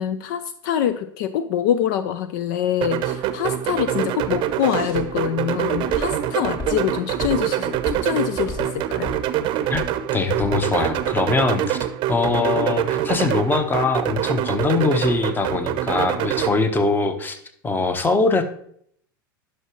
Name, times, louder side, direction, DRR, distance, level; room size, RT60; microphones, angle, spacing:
voice 1, 0.0-9.1, left 9 dB, 60° left, 13 dB, 0.5 m, -25 dB
sound 1, 2.8-16.5, right 11 dB, 45° right, 0.7 m, -25 dB
Walk footsteps, 3.0-11.1, left 2 dB, 40° left, 1.9 m, -36 dB
voice 2, 10.1-11.8 12.1-17.4 17.6-18.4, left 3 dB, 15° left, 8 dB, 1.0 m, -22 dB
11.0 x 5.8 x 3.1 m, 0.65 s
hypercardioid pair, 90°, 12 cm